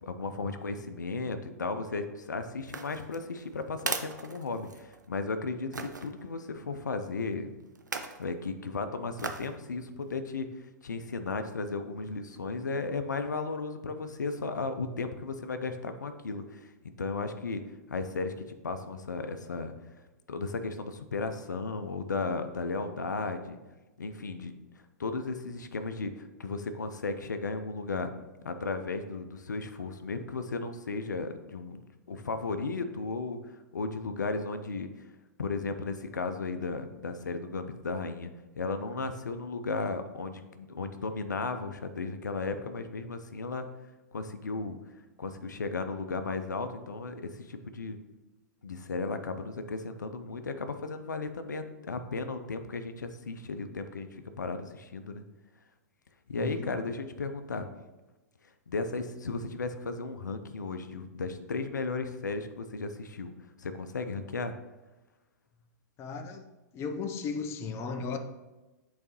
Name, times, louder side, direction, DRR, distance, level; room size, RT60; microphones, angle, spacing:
voice 1, 0.0-7.5 8.2-10.5 10.8-17.6 17.9-18.3 18.6-19.7 20.3-23.6 24.0-24.6 25.0-28.1 28.4-33.4 33.7-34.9 35.4-38.3 38.6-43.7 44.1-44.8 45.2-48.0 48.6-55.2 56.3-57.7 58.7-63.3 63.6-64.5, left 3 dB, 85° left, 0.5 m, -35 dB
sound 1, 2.6-5.1 5.7-6.1 7.8-8.2 9.2-9.6 10.0-10.1, right 4 dB, 90° right, 0.5 m, -37 dB
voice 2, 56.3-56.8 66.0-66.4 66.7-68.2, left 5 dB, 25° left, 0.6 m, -35 dB
8.5 x 4.0 x 3.0 m
hypercardioid pair, 110°, 10 cm